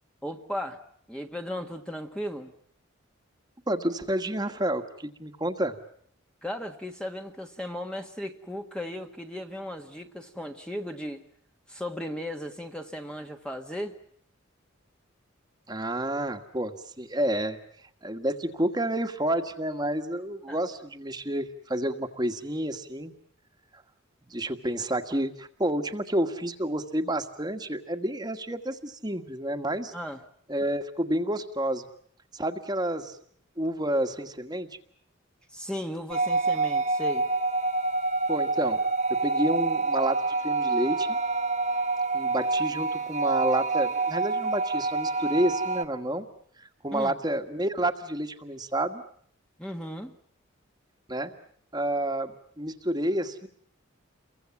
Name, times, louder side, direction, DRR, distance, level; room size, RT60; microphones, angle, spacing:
voice 1, 0.2-0.8 1.1-2.5 6.4-11.2 11.7-13.9 20.5-20.6 29.9-30.2 35.5-37.3 46.9-47.2 49.6-50.1, equal, 5° left, 4 dB, 1.5 m, -36 dB
voice 2, 3.7-5.8 15.7-17.6 18.0-23.1 24.3-29.9 30.5-31.9 32.3-33.2 33.6-34.7 38.3-38.8 39.2-41.2 42.1-46.3 46.6-49.0 51.1-51.3 51.7-53.5, right 1 dB, 20° right, 7 dB, 1.7 m, -29 dB
sound 1, 36.1-45.9, right 3 dB, 35° right, 1.7 m, -27 dB
30.0 x 23.5 x 7.2 m, 0.64 s
head